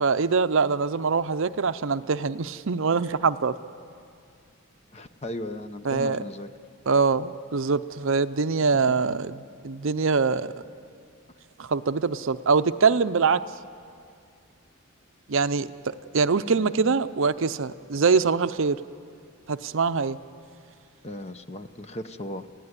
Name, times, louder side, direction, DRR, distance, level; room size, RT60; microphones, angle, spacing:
voice 1, 0.0-3.5 5.8-6.2 6.9-9.4 9.6-10.5 11.6-13.4 15.3-18.8 19.5-20.2, right 5 dB, 60° right, 12 dB, 0.6 m, -23 dB
voice 2, 4.9-6.5 8.6-9.2 16.5-16.9 21.0-22.5, left 1 dB, 30° left, 10 dB, 0.8 m, -37 dB
29.0 x 16.5 x 9.7 m, 2.3 s
head